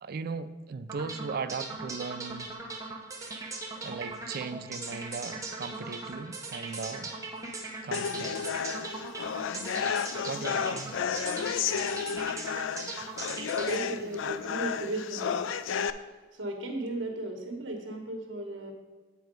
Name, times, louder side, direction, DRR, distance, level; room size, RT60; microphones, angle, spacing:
voice 1, 0.0-2.5 3.8-7.1 7.8-8.4 10.3-11.0, right 4 dB, 55° right, 11 dB, 0.4 m, -38 dB
sound 1, 0.9-15.0, right 3 dB, 15° right, 0.9 m, -39 dB
sound 2, 7.9-15.9, left 7 dB, 85° left, 0.4 m, -32 dB
voice 2, 13.6-15.4 16.3-18.7, right 1 dB, 75° right, 3 dB, 1.2 m, -35 dB
8.0 x 4.6 x 5.2 m, 1.3 s
head